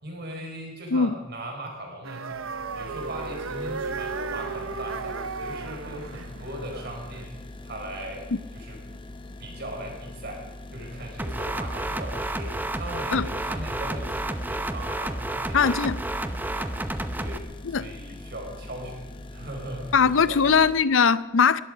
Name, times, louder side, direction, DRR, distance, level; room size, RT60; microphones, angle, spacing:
voice 1, 0.0-2.4 2.7-7.3 7.6-8.3 8.5-8.8 9.4-10.4 10.7-15.6 16.0-16.7 17.2-20.6, right 1 dB, 50° right, 4.8 m, -39 dB
sound 1, 2.0-7.2, right 4 dB, 75° right, 0.8 m, -35 dB
sound 2, 2.3-20.7, left 2 dB, 25° left, 1.1 m, -42 dB
sound 3, 11.2-17.4, right 1 dB, 10° right, 0.7 m, -31 dB
voice 2, 15.5-16.0 17.6-17.9 19.9-21.6, left 6 dB, 65° left, 0.6 m, -20 dB
20.5 x 13.5 x 5.0 m
head